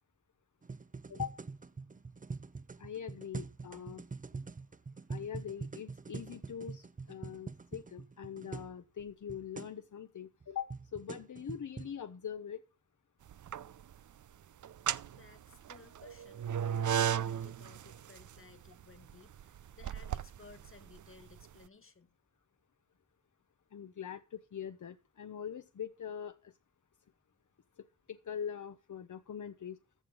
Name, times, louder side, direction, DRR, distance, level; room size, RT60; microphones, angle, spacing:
sound 1, 0.6-8.7 9.0-9.1 9.3-9.7 10.4-11.9, right 4 dB, 25° right, 0.5 m, -44 dB
voice 1, 2.8-4.0 5.1-12.6 23.7-26.5 28.1-29.8, left 8 dB, 75° left, 0.9 m, -43 dB
sound 2, 13.3-14.0 14.6-21.5, right 9 dB, 75° right, 0.5 m, -36 dB
voice 2, 15.1-22.2, left 4 dB, 45° left, 1.7 m, -58 dB
15.0 x 7.8 x 4.9 m
wide cardioid pair, 85°, 31 cm